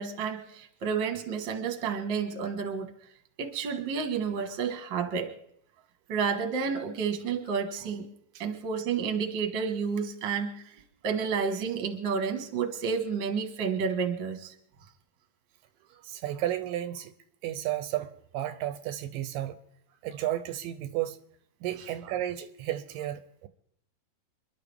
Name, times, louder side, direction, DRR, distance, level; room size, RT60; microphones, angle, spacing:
voice 1, 0.0-2.9 3.4-5.3 6.1-8.1 8.4-14.5, right 6 dB, 45° right, 1.8 m, -30 dB
voice 2, 16.0-17.1 17.4-19.6 20.0-21.2 21.6-23.5, right 13 dB, 80° right, 2.3 m, -33 dB
28.0 x 11.5 x 3.6 m
omnidirectional pair, 4.0 m